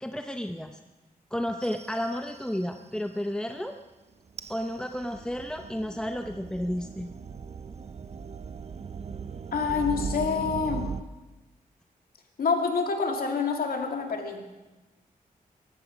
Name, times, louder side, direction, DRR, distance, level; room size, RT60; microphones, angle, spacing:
voice 1, 0.0-0.8 1.3-3.7 4.5-7.1, equal, 5° left, 5 dB, 0.7 m, -32 dB
sound 1, 1.6-2.8 4.3-11.0, right 5 dB, 45° right, 0.6 m, -39 dB
voice 2, 9.5-10.9 12.4-14.4, left 5 dB, 80° left, 2 dB, 2.4 m, -27 dB
18.5 x 15.0 x 5.1 m, 1.1 s
wide cardioid pair, 100°, 15 cm